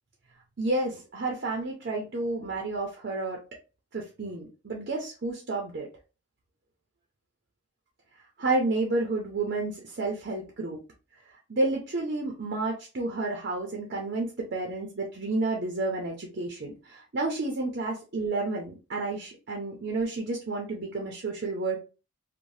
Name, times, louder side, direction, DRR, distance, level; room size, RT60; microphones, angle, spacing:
voice 1, 0.6-3.4 3.9-5.9 8.4-10.8 11.5-21.8, right 2 dB, 50° right, 0 dB, 0.5 m, -30 dB
2.6 x 2.1 x 3.1 m, 0.33 s
head